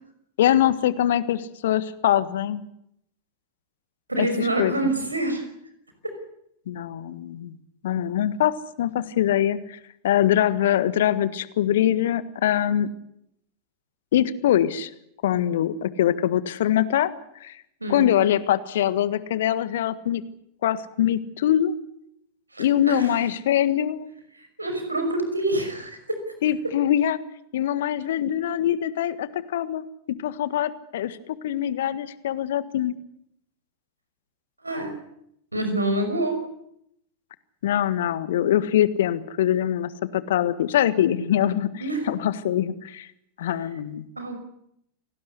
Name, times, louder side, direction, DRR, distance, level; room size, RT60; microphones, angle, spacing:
voice 1, 0.4-2.6 4.2-4.3 4.6-4.7 6.7-7.6 7.8-9.8 10.0-12.9 14.1-14.9 15.2-17.1 17.4-17.6 17.9-20.2 20.6-21.8 22.6-24.1 26.4-27.2 27.5-29.8 30.2-31.2 31.4-32.9 37.6-43.1 43.4-44.0, left 11 dB, 60° left, 15 dB, 1.6 m, -23 dB
voice 2, 4.1-5.5 6.0-6.2 17.8-18.1 22.5-23.2 24.3-26.3 26.6-26.7 34.6-35.0 35.5-36.4 41.8-42.1 44.2-44.4, right 1 dB, 85° right, 7 dB, 5.8 m, -27 dB
28.5 x 19.0 x 8.3 m, 0.76 s
figure-of-eight pair, 90°, 0 cm